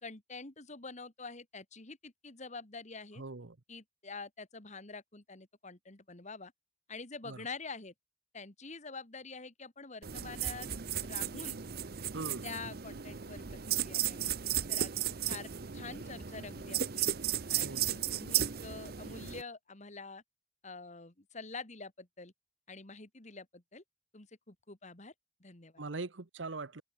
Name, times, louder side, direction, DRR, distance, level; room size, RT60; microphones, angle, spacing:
voice 1, 0.0-3.2 3.7-6.5 6.9-7.9 8.3-10.7 11.0-11.6 12.4-14.3 14.7-17.1 17.5-20.2 20.6-22.3 22.7-23.8 24.1-25.1 25.4-25.8, left 4 dB, 40° left, 2.3 m, -46 dB
voice 2, 3.2-3.5 7.3-7.4 12.1-12.5 14.5-15.1 17.6-18.0 25.8-26.8, right 3 dB, 90° right, 1.1 m, -42 dB
sound 1, 10.0-19.4, right 10 dB, 55° right, 0.9 m, -35 dB
open air
head